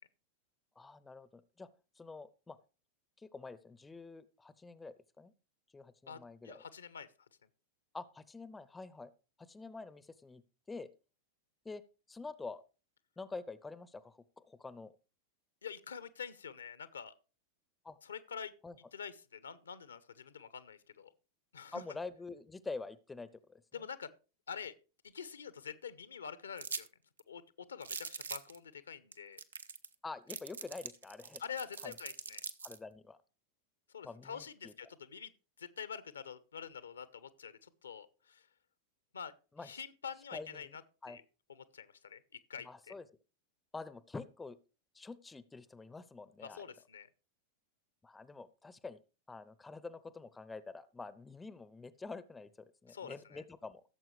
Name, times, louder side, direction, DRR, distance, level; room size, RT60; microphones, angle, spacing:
voice 1, 0.8-1.7 2.0-2.6 3.2-5.3 5.7-6.6 7.9-9.1 9.4-10.9 11.6-11.8 12.1-12.6 13.2-14.9 17.8-18.0 18.6-18.8 21.7-23.6 30.0-31.4 31.8-32.0 32.6-33.2 34.0-34.7 39.6-39.7 40.3-40.7 41.0-41.2 42.6-43.0 43.7-44.6 44.9-46.7 48.0-49.0 49.3-53.8, left 3 dB, 10° left, 16 dB, 0.6 m, -47 dB
voice 2, 6.1-7.1 15.6-17.1 18.0-18.5 18.9-21.1 21.5-21.8 23.7-24.1 24.5-24.7 25.1-26.9 27.3-29.4 31.4-32.4 33.9-35.3 35.6-38.5 39.1-39.3 39.6-40.8 41.1-41.2 41.5-42.2 42.5-42.9 46.4-47.1 52.9-53.4, left 7 dB, 70° left, 16 dB, 0.9 m, -46 dB
sound 1, 26.6-26.9 27.2-27.3 27.8-28.6 29.1-29.2 29.4-29.9 30.3-32.8, right 5 dB, 70° right, 0.8 m, -42 dB
16.5 x 7.5 x 3.2 m, 0.33 s
figure-of-eight pair, 90°, 0 cm